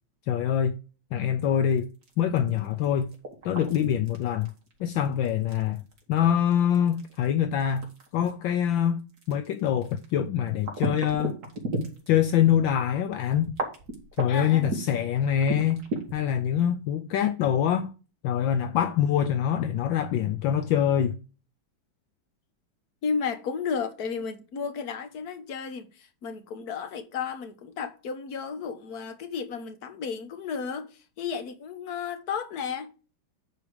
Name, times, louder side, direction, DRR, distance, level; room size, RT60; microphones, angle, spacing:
voice 1, 0.3-0.8 1.1-1.9 2.2-3.1 3.4-4.5 4.8-5.8 6.1-11.4 12.1-13.5 14.2-15.9 16.1-17.9 18.2-21.1, left 9 dB, 75° left, 1.4 m, -25 dB
sound 1, 1.7-12.3 12.7-12.8 13.3-16.3, right 2 dB, 50° right, 2.6 m, -35 dB
voice 2, 14.3-14.8 23.0-30.9 31.2-32.9, left 6 dB, 55° left, 1.6 m, -33 dB
9.8 x 4.7 x 4.8 m
omnidirectional pair, 2.2 m